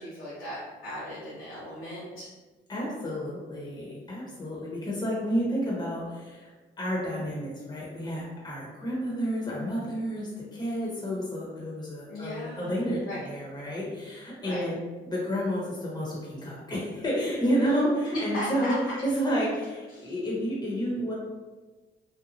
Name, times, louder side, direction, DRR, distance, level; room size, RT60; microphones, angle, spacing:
voice 1, 0.0-2.3 12.1-13.2 14.4-14.6 18.3-18.7 19.9-20.1, equal, 90° left, -11 dB, 1.0 m, -38 dB
voice 2, 2.7-6.5 6.8-14.8 15.0-21.1, equal, 20° left, -5 dB, 0.8 m, -30 dB
3.0 x 2.1 x 2.6 m, 1.3 s
cardioid pair, 90°, 20 cm